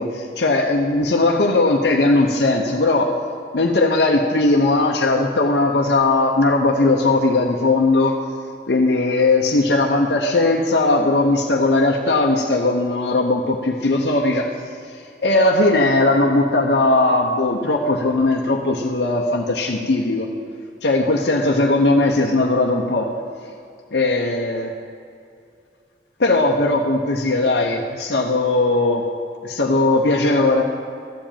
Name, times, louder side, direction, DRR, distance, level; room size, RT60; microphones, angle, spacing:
voice 1, 0.0-3.1 3.5-8.2 8.7-14.5 15.2-20.3 20.8-23.1 23.9-24.7 26.2-29.0 29.4-30.6, left 2 dB, 65° left, -1 dB, 0.8 m, -18 dB
12.5 x 5.1 x 8.8 m, 2.3 s
head